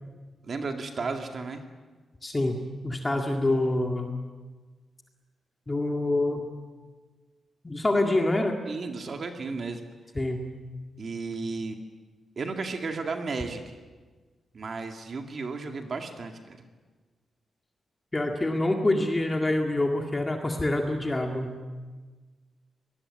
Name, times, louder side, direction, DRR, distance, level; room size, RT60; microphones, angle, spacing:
voice 1, 0.4-1.6 8.7-9.9 11.0-11.8 12.4-13.8 14.5-16.6, right 4 dB, 40° right, 4 dB, 2.2 m, -34 dB
voice 2, 2.2-4.2 5.7-6.5 7.6-8.6 10.2-10.4 18.1-21.6, left 2 dB, 15° left, 2 dB, 1.9 m, -26 dB
25.0 x 20.0 x 9.8 m, 1.4 s
wide cardioid pair, 170°, 0 cm